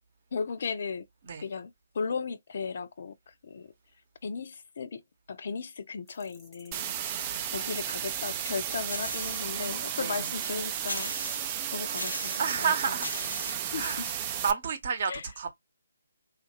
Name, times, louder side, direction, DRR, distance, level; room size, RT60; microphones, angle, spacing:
voice 1, 0.3-1.1 1.4-3.7 4.2-5.0 5.3-11.1 11.7-12.7 13.7-14.3 15.1-15.3, left 5 dB, 50° left, 0.6 m, -36 dB
sound 1, 6.1-11.2, equal, ahead, 0.8 m, -57 dB
sound 2, 6.7-14.5, right 10 dB, 25° right, 0.4 m, -34 dB
voice 2, 6.8-8.0 10.0-10.3 12.4-13.1 13.7-14.0 14.4-15.5, right 6 dB, 45° right, 0.8 m, -32 dB
sound 3, 8.9-9.6 10.1-10.2 10.9-11.6 12.0-12.6 13.0-13.7, left 2 dB, 90° left, 0.7 m, -39 dB
3.1 x 2.5 x 2.9 m
figure-of-eight pair, 150°, 0 cm